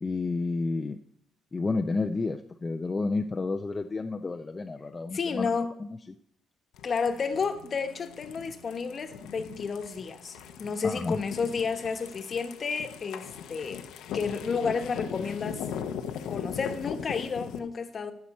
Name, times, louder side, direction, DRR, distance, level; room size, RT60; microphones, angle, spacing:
voice 1, 0.0-1.0 1.5-5.5 5.8-5.9 10.8-11.2, left 3 dB, 25° left, 5 dB, 0.5 m, -30 dB
voice 2, 5.1-5.7 6.8-13.9 14.1-15.7 16.3-18.1, left 5 dB, 45° left, 7 dB, 1.1 m, -31 dB
sound 1, 6.7-17.6, left 8 dB, 90° left, 0.8 m, -39 dB
sound 2, 7.1-12.5, right 2 dB, ahead, 1.8 m, -58 dB
14.5 x 5.8 x 4.3 m, 0.70 s
cardioid pair, 90°, 0 cm